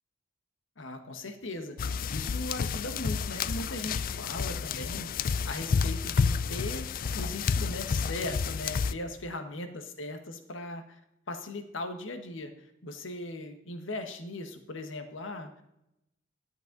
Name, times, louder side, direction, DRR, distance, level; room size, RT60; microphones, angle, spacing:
voice 1, 0.8-6.9 7.1-11.0 11.3-15.5, left 2 dB, 75° left, 7 dB, 1.2 m, -39 dB
sound 1, 1.8-8.9, left 5 dB, 45° left, 0.4 m, -30 dB
12.0 x 8.1 x 3.8 m, 0.85 s
head